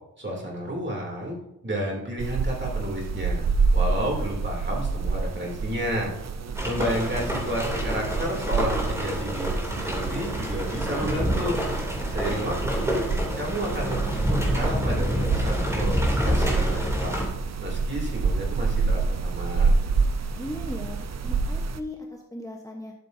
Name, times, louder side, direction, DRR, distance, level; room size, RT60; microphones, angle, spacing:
voice 1, 0.2-1.4 1.6-3.4 3.7-6.1 6.6-11.6 12.1-13.0 13.3-17.3 17.6-19.7, equal, 30° right, -2 dB, 2.9 m, -31 dB
sound 1, 2.2-21.8, right 4 dB, 50° right, 0.6 m, -28 dB
sound 2, 6.5-17.3, equal, 10° right, 2.9 m, -28 dB
voice 2, 20.3-22.9, left 1 dB, 10° left, 0 dB, 1.1 m, -38 dB
12.5 x 6.7 x 2.7 m, 0.89 s
wide cardioid pair, 85°, 34 cm